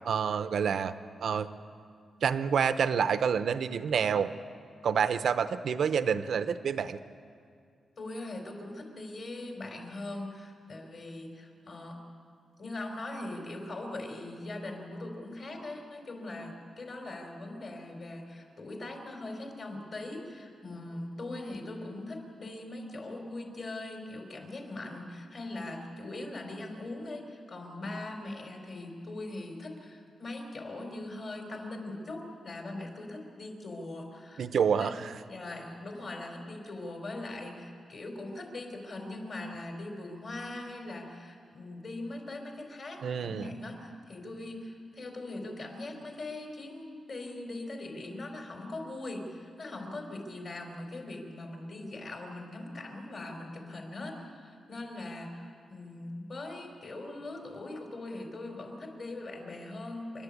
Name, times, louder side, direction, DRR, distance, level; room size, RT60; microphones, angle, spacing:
voice 1, 0.0-0.9 1.2-1.5 2.2-4.3 4.8-7.0 34.4-35.2 43.0-43.5, right 7 dB, 70° right, 11 dB, 0.7 m, -28 dB
voice 2, 8.0-12.0 12.6-34.4 34.8-34.9 35.3-60.2, left 2 dB, 50° left, 2 dB, 4.1 m, -41 dB
28.5 x 12.0 x 8.5 m, 2.3 s
wide cardioid pair, 130°, 0 cm